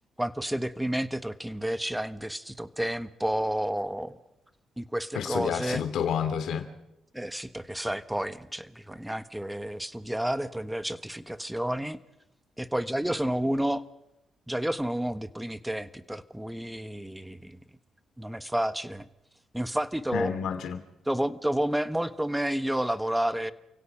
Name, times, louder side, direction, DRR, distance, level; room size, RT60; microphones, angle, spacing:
voice 1, 0.2-4.2 4.8-5.8 7.1-12.0 12.6-13.8 14.5-17.6 18.2-19.1 19.5-20.3 21.1-23.5, right 1 dB, 5° right, 1.3 m, -30 dB
voice 2, 5.1-6.7 20.1-20.8, left 8 dB, 75° left, 2.7 m, -29 dB
29.0 x 17.0 x 6.0 m
cardioid pair, 70°, 0 cm